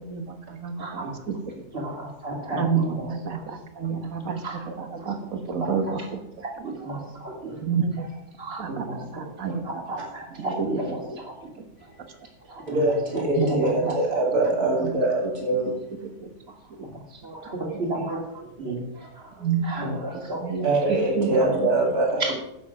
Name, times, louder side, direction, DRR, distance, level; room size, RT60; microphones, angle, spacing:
voice 1, 0.0-1.4 2.5-4.4 4.8-6.2 7.6-8.1 8.6-9.8 10.4-10.7 11.6-11.7 13.3-14.0 14.5-14.9 15.2-15.3 16.0-16.3 16.8-16.9 19.4-20.0 20.3-21.7, right 6 dB, 65° right, 7 dB, 1.6 m, -29 dB
voice 2, 0.8-1.3 1.7-3.6 4.4-4.7 5.0-5.1 5.6-6.1 6.4-7.6 8.4-11.3 11.8-14.2 16.5-20.8 21.3-21.6 22.2-22.3, right 2 dB, 40° right, 0 dB, 2.7 m, -33 dB
voice 3, 12.7-15.8 20.6-22.3, right 2 dB, 85° right, -1 dB, 3.1 m, -23 dB
11.0 x 7.0 x 6.3 m, 0.88 s
omnidirectional pair, 1.6 m